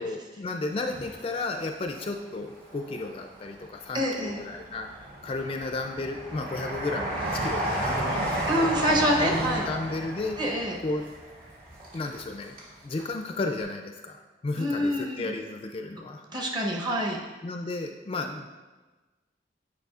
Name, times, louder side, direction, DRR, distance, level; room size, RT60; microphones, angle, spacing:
voice 1, 0.0-8.7 9.2-10.4 10.8-11.0 11.9-12.6 12.8-16.2 17.4-18.5, left 2 dB, 30° left, 4 dB, 0.3 m, -33 dB
Train, 0.8-2.0 2.5-3.4 4.0-12.7 13.0-13.1, right 1 dB, 55° right, 1.6 m, -33 dB
voice 2, 3.9-4.4 8.5-9.7 10.4-10.8 14.6-15.3 16.3-17.2, equal, 25° right, 0 dB, 0.8 m, -26 dB
9.2 x 4.8 x 2.4 m, 1.2 s
head